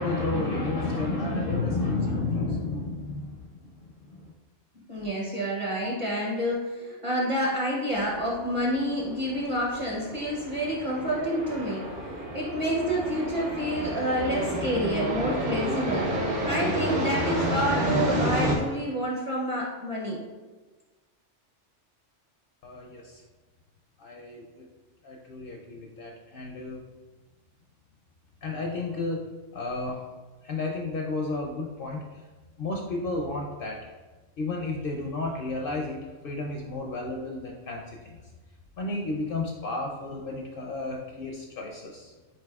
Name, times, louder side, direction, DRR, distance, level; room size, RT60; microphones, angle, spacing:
voice 1, 0.0-4.3 22.6-23.2 24.0-24.7 25.0-26.8 28.4-29.2 29.5-30.0 30.4-32.2 32.6-33.8 34.4-38.2 38.8-42.1, left 3 dB, 60° left, 0 dB, 0.6 m, -32 dB
voice 2, 4.9-16.1 16.4-20.2, equal, 35° right, -4 dB, 0.6 m, -28 dB
sound 1, 8.0-18.6, equal, 70° right, 1.1 m, -30 dB
7.3 x 2.6 x 2.3 m, 1.2 s
omnidirectional pair, 1.2 m